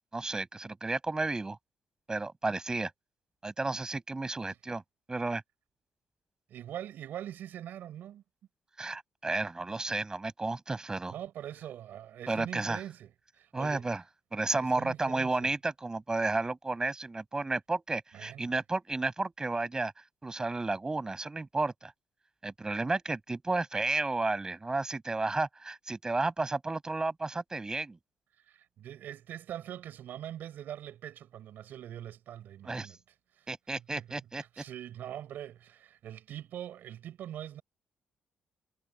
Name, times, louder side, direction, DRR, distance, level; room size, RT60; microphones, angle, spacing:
voice 1, 0.1-1.6 2.1-2.9 3.4-4.8 5.1-5.4 8.8-11.1 12.3-12.8 13.5-14.0 14.3-19.9 20.2-21.9 22.4-28.0 32.6-32.9 33.5-34.6, right 3 dB, 20° right, 7.6 m, -32 dB
voice 2, 6.5-8.2 11.1-13.9 14.5-15.5 18.1-18.5 28.5-33.0 33.4-33.5 33.9-37.6, right 11 dB, 75° right, 5.9 m, -43 dB
cardioid pair, 95°, 3 cm